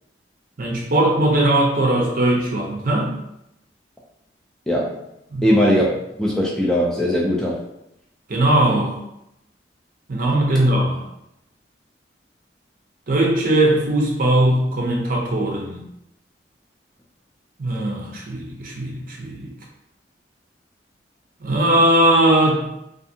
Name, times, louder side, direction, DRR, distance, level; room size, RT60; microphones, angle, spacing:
voice 1, 0.6-3.1 5.3-5.6 8.3-9.0 10.1-11.0 13.1-15.8 17.6-19.5 21.4-22.7, right 1 dB, 50° right, -1 dB, 0.5 m, -19 dB
voice 2, 4.7-5.0 5.4-5.9 6.2-7.6, equal, 5° left, -4 dB, 0.3 m, -19 dB
2.5 x 2.5 x 2.6 m, 0.82 s
head